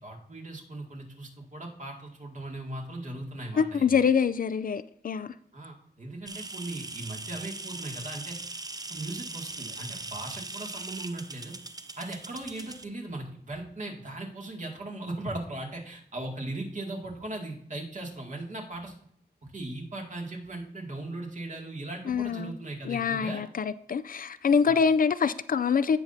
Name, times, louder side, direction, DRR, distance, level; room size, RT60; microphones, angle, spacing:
voice 1, 0.0-3.9 5.5-8.4 8.9-11.5 12.0-18.9 19.5-23.4 24.6-24.8, right 2 dB, 50° right, 2.1 m, -38 dB
voice 2, 3.6-5.4 22.1-22.5 22.8-26.0, left 6 dB, 55° left, 0.4 m, -25 dB
sound 1, 6.3-12.8, right 3 dB, 20° right, 0.5 m, -40 dB
16.5 x 5.8 x 2.7 m
wide cardioid pair, 115°, 17 cm